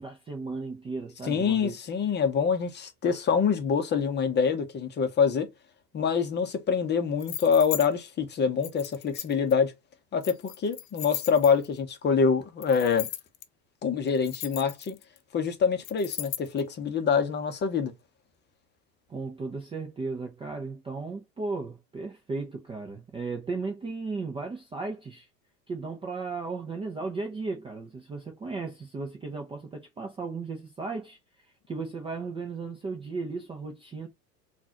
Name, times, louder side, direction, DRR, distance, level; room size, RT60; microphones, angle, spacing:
voice 1, 0.0-1.8 19.1-25.3 25.7-31.2 31.7-34.1, right 3 dB, 10° right, 0.5 m, -35 dB
voice 2, 1.2-5.5 5.9-9.7 10.1-13.1 13.8-15.0 15.3-17.9, left 6 dB, 20° left, 0.8 m, -25 dB
sound 1, 7.2-7.9 8.6-9.5 10.2-11.8 12.6-13.4 14.1-15.2 15.8-16.6, left 13 dB, 65° left, 0.6 m, -37 dB
3.8 x 2.5 x 2.8 m
figure-of-eight pair, 85°, 48 cm